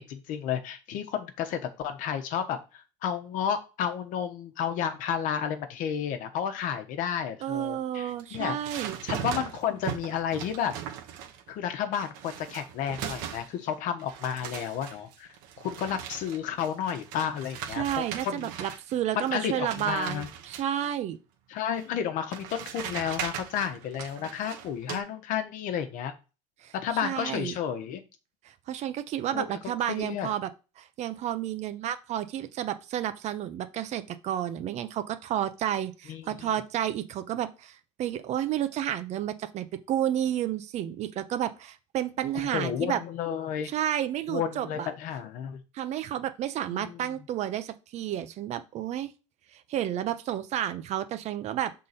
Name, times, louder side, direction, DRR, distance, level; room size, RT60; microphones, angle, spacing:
voice 1, 0.0-10.7 11.5-18.7 19.2-20.3 21.5-26.1 26.7-28.0 29.3-29.5 29.9-30.3 36.1-36.5 42.5-43.7 44.3-45.6 46.7-47.1, left 8 dB, 60° left, 8 dB, 1.1 m, -32 dB
voice 2, 7.4-9.0 17.7-21.2 26.6-26.7 27.0-27.6 28.7-30.5 30.8-43.0 43.6-44.9 45.7-49.1 49.5-51.7, right 11 dB, 45° right, 11 dB, 0.7 m, -31 dB
sound 1, 8.1-11.5 11.9-13.7 14.0-18.9 19.3-20.9 21.8-21.9 22.3-25.0, right 9 dB, 70° right, 1.1 m, -39 dB
6.5 x 3.8 x 4.2 m, 0.31 s
cardioid pair, 125°, 15 cm